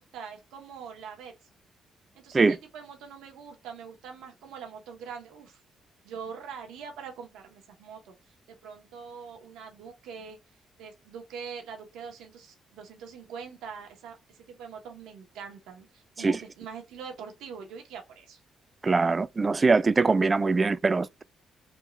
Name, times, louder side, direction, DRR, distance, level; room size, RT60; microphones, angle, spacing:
voice 1, 0.1-1.3 2.1-5.6 6.0-10.4 10.8-18.4, right 6 dB, 90° right, 1.0 m, -43 dB
voice 2, 18.8-21.2, right 4 dB, 30° right, 0.3 m, -23 dB
3.5 x 2.4 x 3.0 m
cardioid pair, 90°, 0 cm